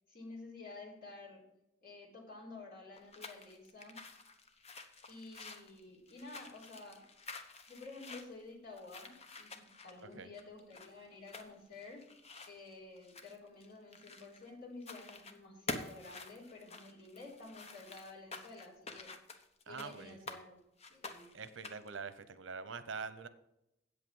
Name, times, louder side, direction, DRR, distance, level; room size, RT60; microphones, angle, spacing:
voice 1, 0.1-1.4 1.8-4.0 5.1-7.0 7.7-12.0 12.5-19.1 19.7-20.6 20.9-21.3, left 3 dB, 55° left, -4 dB, 4.0 m, -51 dB
sound 1, 2.9-14.5 14.8-15.4 15.7-20.4 20.8-22.0, left 3 dB, 35° left, 1.0 m, -49 dB
voice 2, 19.7-20.4 21.3-23.3, right 5 dB, 85° right, 13 dB, 0.8 m, -45 dB
8.3 x 8.2 x 5.5 m, 0.87 s
head